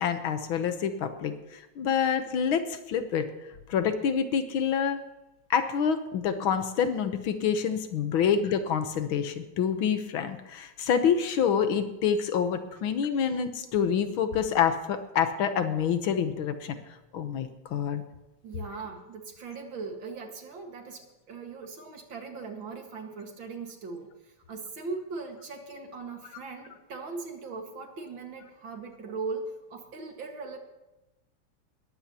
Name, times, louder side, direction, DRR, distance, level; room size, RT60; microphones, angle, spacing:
voice 1, 0.0-3.3 3.7-5.0 5.5-16.8 17.1-18.0, left 7 dB, 70° left, 9 dB, 1.7 m, -27 dB
voice 2, 18.4-30.6, right 4 dB, 60° right, 3 dB, 2.5 m, -39 dB
20.0 x 14.5 x 2.9 m, 1.0 s
omnidirectional pair, 2.4 m